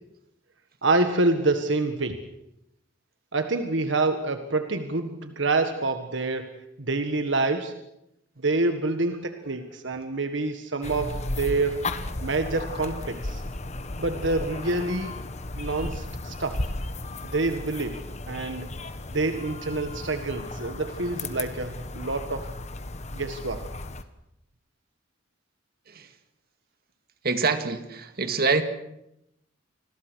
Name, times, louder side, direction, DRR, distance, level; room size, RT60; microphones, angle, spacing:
voice 1, 0.8-2.3 3.3-7.8 8.4-11.9 12.2-13.4 14.0-15.3 15.6-16.7 17.3-18.7 19.1-22.5 23.1-23.6, right 3 dB, 70° right, 7 dB, 1.6 m, -27 dB
sound 1, 10.8-24.0, left 2 dB, 35° left, 1.3 m, -35 dB
voice 2, 27.2-28.6, right 4 dB, 55° right, 8 dB, 2.1 m, -25 dB
28.0 x 21.5 x 6.4 m, 0.82 s
head